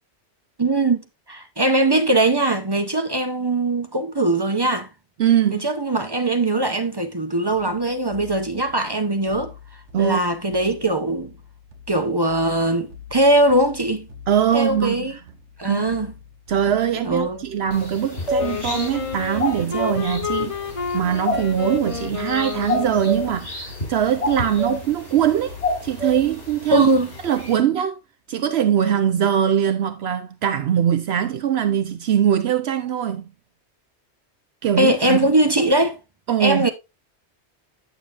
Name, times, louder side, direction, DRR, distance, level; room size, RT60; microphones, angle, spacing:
voice 1, 0.6-4.9 5.5-9.5 10.0-11.3 11.9-14.1 14.5-15.2 15.6-16.1 16.9-17.4 26.7-27.1 34.8-36.0 36.4-36.7, right 1 dB, 30° right, 0.6 m, -21 dB
voice 2, 5.2-5.6 9.9-10.2 14.3-15.2 15.7-15.8 16.5-20.5 20.9-25.6 25.8-26.9 27.2-28.0 28.3-33.3 34.6-35.3 36.3-36.7, right 9 dB, 70° right, 0.8 m, -22 dB
sound 1, 7.5-26.6, left 6 dB, 90° right, 1.4 m, -44 dB
sound 2, 17.7-27.6, left 1 dB, 60° left, 3.3 m, -29 dB
Wind instrument woodwind instrument, 18.4-23.4, left 6 dB, 35° left, 0.7 m, -30 dB
9.1 x 6.9 x 2.5 m
omnidirectional pair, 1.2 m